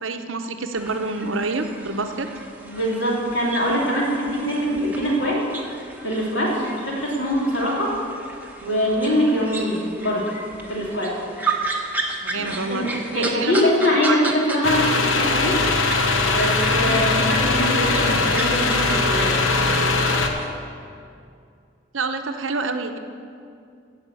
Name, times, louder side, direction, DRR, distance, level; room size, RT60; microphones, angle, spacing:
voice 1, 0.0-2.3 6.6-6.8 12.2-13.5 14.1-14.4 16.8-17.0 21.9-23.0, right 3 dB, 80° right, 7 dB, 0.8 m, -28 dB
sound 1, 0.7-14.9 15.2-20.5, right 3 dB, 10° right, 0.9 m, -34 dB
voice 2, 2.6-5.4 6.0-7.9 8.6-10.3 10.7-11.2 12.3-15.6 16.3-19.8, equal, 65° left, -4 dB, 3.0 m, -23 dB
sound 2, 14.6-20.3, left 3 dB, 85° left, 1.0 m, -20 dB
14.5 x 5.1 x 8.2 m, 2.4 s
head